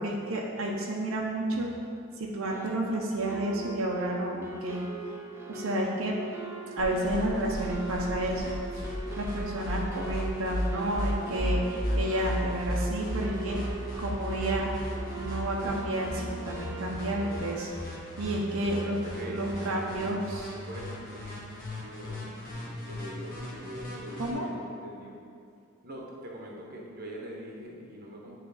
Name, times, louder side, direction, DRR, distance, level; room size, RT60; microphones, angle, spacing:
voice 1, 0.0-1.7 2.2-4.9 5.5-6.3 6.8-8.9 9.2-13.6 14.0-17.7 18.2-19.0 19.2-20.4 24.2-24.5, right 1 dB, 85° right, -1 dB, 0.7 m, -31 dB
sound 1, 2.5-17.7, right 3 dB, 10° right, 0.5 m, -41 dB
sound 2, 6.8-24.3, equal, 45° left, 1.3 m, -36 dB
voice 2, 18.6-20.1 20.5-25.2 25.8-28.3, equal, 45° right, -2 dB, 0.9 m, -43 dB
9.3 x 3.3 x 4.0 m, 2.4 s
head